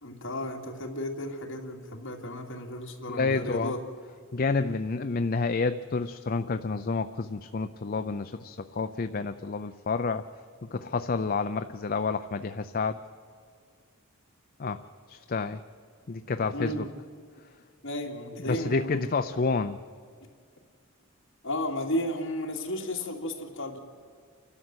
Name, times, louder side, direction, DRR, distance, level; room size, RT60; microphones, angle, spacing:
voice 1, 0.0-3.8 16.5-16.9 17.8-19.1 21.4-23.8, left 1 dB, 60° left, 1 dB, 2.8 m, -33 dB
voice 2, 3.1-3.7 4.3-10.3 10.7-13.0 14.6-14.8 15.1-15.6 16.1-16.8 18.4-19.8, left 4 dB, 45° left, 9 dB, 0.5 m, -29 dB
29.0 x 12.5 x 7.9 m, 2.2 s
head